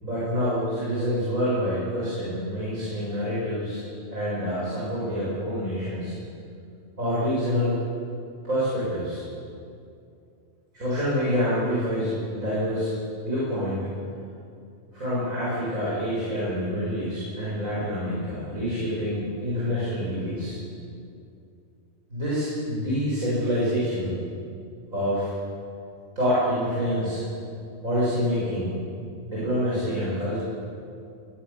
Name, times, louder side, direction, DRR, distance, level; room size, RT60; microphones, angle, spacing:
voice 1, 0.0-3.8 4.1-6.1 7.0-7.8 8.4-9.2 10.7-12.9 13.2-13.9 14.9-20.6 22.1-24.2 24.9-25.3 26.2-27.2 27.8-28.7 29.3-30.4, equal, 80° right, -9 dB, 7.4 m, -27 dB
22.0 x 20.5 x 7.3 m, 2.5 s
omnidirectional pair, 1.4 m